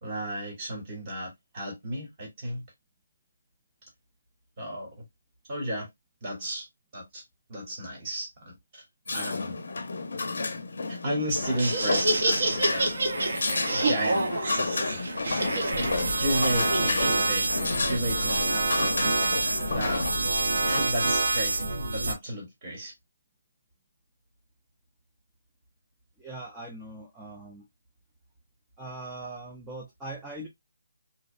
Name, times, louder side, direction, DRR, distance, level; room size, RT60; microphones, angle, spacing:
voice 1, 0.0-2.6 4.6-4.9 5.5-5.9 6.2-6.7 6.9-7.2 7.5-8.8 9.1-9.6 10.9-12.9 13.7-14.3 14.6-15.0 16.2-17.5 17.9-18.9 19.2-19.4 19.7-20.0 20.7-22.9, right 1 dB, 20° right, 0.9 m, -33 dB
sound 1, 9.1-20.8, left 3 dB, 60° left, 0.5 m, -32 dB
Laughter, 11.4-18.0, right 2 dB, 50° right, 0.7 m, -29 dB
sound 2, 15.7-22.1, right 2 dB, 85° right, 0.7 m, -27 dB
voice 2, 26.2-27.7 28.8-30.5, right 2 dB, 5° right, 0.3 m, -41 dB
2.6 x 2.0 x 2.3 m
hypercardioid pair, 175°, 0 cm